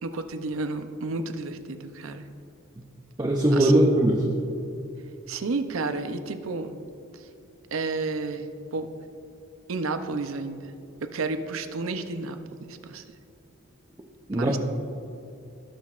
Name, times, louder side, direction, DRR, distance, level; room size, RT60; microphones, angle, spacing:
voice 1, 0.0-2.3 3.5-3.8 5.3-6.8 7.7-8.9 9.7-13.0 14.3-14.6, right 3 dB, 75° right, 8 dB, 0.6 m, -31 dB
voice 2, 3.2-4.4 14.3-14.6, right 1 dB, 20° right, 0 dB, 0.5 m, -20 dB
17.5 x 6.2 x 2.5 m, 2.7 s
head